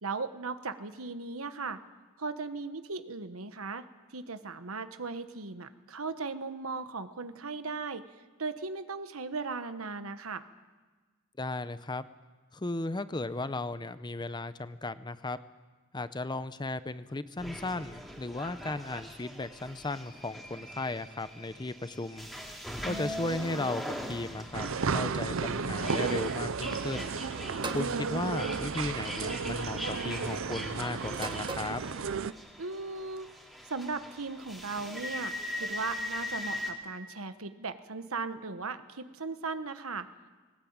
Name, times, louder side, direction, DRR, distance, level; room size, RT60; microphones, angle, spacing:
voice 1, 0.0-1.8 2.2-3.8 4.1-8.0 8.4-10.4 22.9-23.7 32.6-33.3 33.7-40.1, right 4 dB, 90° right, 10 dB, 1.2 m, -37 dB
voice 2, 11.4-12.0 12.5-15.4 15.9-22.4 22.8-27.1 27.7-31.8, left 2 dB, 20° left, 13 dB, 0.7 m, -36 dB
sound 1, 17.4-36.7, left 1 dB, ahead, 2.6 m, -41 dB
sound 2, 24.5-32.3, right 5 dB, 70° right, 0.7 m, -33 dB
sound 3, 27.6-28.0 29.1-29.5 31.1-31.8, right 3 dB, 20° right, 1.3 m, -38 dB
19.5 x 19.0 x 8.8 m, 1.4 s
head